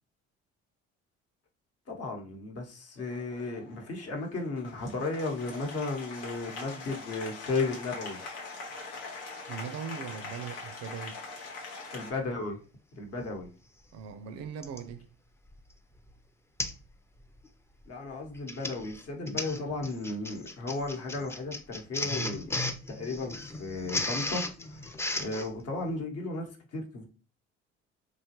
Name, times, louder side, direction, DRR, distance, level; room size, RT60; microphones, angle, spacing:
voice 1, 1.9-8.2 11.9-12.6 12.9-13.5 17.9-22.6 22.9-27.1, left 3 dB, 50° left, 1.0 m, -35 dB
Applause, 3.0-12.1, left 3 dB, 80° left, 0.8 m, -43 dB
voice 2, 9.5-11.2 13.9-15.1, right 7 dB, 55° right, 0.4 m, -40 dB
Printer, 13.4-13.5 14.6-14.9 15.5-15.7 16.0-16.1 16.6-16.9 17.2-17.5 18.2-25.5, left 2 dB, 10° left, 0.4 m, -35 dB
3.0 x 2.3 x 2.9 m
hypercardioid pair, 55°, 32 cm